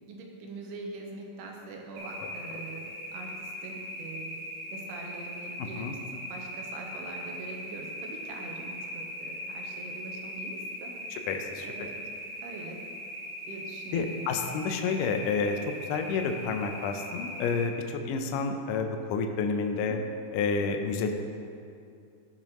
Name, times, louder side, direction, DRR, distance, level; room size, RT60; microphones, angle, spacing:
voice 1, 0.0-4.4 4.7-5.9 6.3-11.3 11.6-12.2 12.4-12.8 13.5-14.4 19.7-20.0, right 3 dB, 90° right, 0 dB, 3.0 m, -43 dB
sound 1, 1.9-17.7, equal, 65° right, 2.0 m, -40 dB
voice 2, 11.1-11.9 13.9-20.0 20.3-21.1, left 5 dB, 85° left, 5 dB, 1.8 m, -30 dB
15.5 x 6.0 x 3.1 m, 2.5 s
omnidirectional pair, 4.5 m